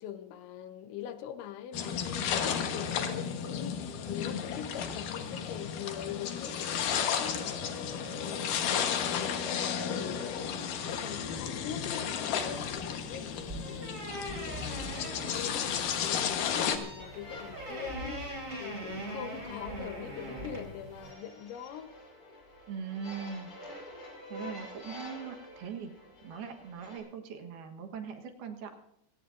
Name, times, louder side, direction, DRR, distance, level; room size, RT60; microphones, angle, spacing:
voice 1, 0.0-15.7 16.0-18.3 18.6-21.9, left 9 dB, 90° left, 3.4 m, -43 dB
sound 1, 1.7-16.8, left 7 dB, 65° left, 2.3 m, -33 dB
sound 2, 12.4-21.1, right 1 dB, 15° right, 4.3 m, -42 dB
sound 3, 16.7-27.0, left 1 dB, 30° left, 7.5 m, -48 dB
voice 2, 22.7-23.5 24.3-25.9 26.2-28.7, right 6 dB, 70° right, 3.0 m, -41 dB
26.0 x 17.5 x 2.6 m
omnidirectional pair, 5.1 m